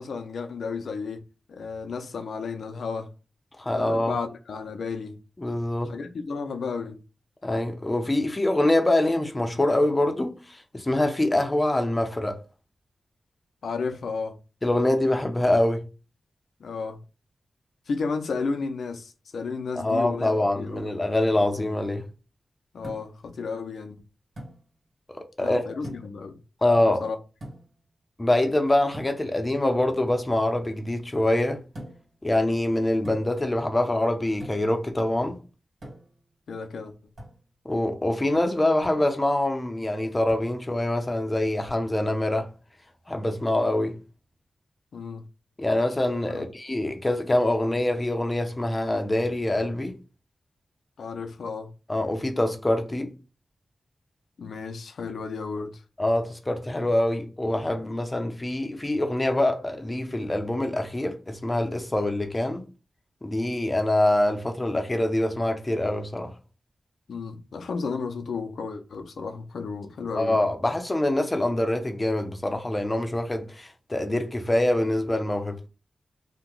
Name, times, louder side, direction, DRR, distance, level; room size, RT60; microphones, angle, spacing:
voice 1, 0.0-3.1 3.6-5.2 5.8-7.0 13.6-14.4 16.6-17.0 17.9-20.3 20.7-20.8 22.7-24.0 25.4-26.4 27.0-27.2 36.5-36.9 44.9-45.2 46.3-46.4 51.0-51.7 54.4-55.8 67.1-70.4, left 4 dB, 90° left, 0.5 m, -33 dB
voice 2, 3.6-4.2 5.4-6.0 7.4-12.4 14.6-15.8 19.8-22.0 25.1-25.7 26.6-27.0 28.2-31.6 32.2-35.4 37.6-42.5 43.1-44.0 45.6-50.0 51.9-53.1 56.0-62.6 63.2-66.3 70.1-75.6, left 1 dB, 20° left, 0.6 m, -25 dB
sound 1, 22.8-23.3 24.4-24.6 25.8-26.2 27.4-27.8 28.9-29.2 31.7-32.1 33.0-33.5 34.4-34.8 35.8-36.2 37.2-37.4 38.8-39.1 40.3-40.6 41.6-41.9, equal, 65° right, 1.7 m, -42 dB
2.8 x 2.2 x 3.7 m
wide cardioid pair, 80°, 0 cm